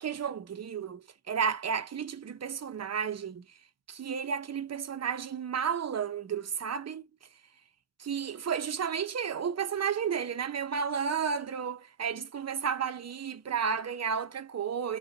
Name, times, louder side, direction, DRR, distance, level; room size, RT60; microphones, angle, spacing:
voice 1, 0.0-3.4 3.9-7.1 8.0-15.0, right 7 dB, 55° right, 0.7 m, -32 dB
4.3 x 2.2 x 3.8 m
wide cardioid pair, 80°, 30 cm